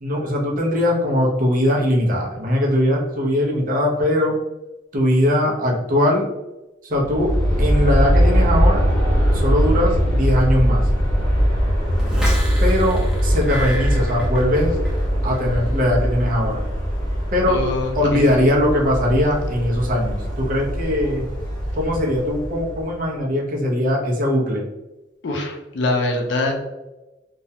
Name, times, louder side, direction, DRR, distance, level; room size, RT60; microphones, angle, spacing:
voice 1, 0.0-4.4 4.9-6.3 6.8-7.3 7.6-8.8 9.3-10.9 12.6-14.8 15.2-16.6 17.3-17.6 18.0-21.3 21.8-24.6, left 1 dB, 45° right, -1 dB, 0.6 m, -20 dB
Aircraft, 6.9-23.0, equal, 20° left, 0.9 m, -21 dB
sound 1, 12.0-15.0 15.3-15.8, equal, 5° right, 0.5 m, -32 dB
voice 2, 17.5-18.5 25.2-26.5, left 2 dB, 65° left, 1 dB, 0.4 m, -24 dB
2.3 x 2.0 x 2.7 m, 1.0 s
head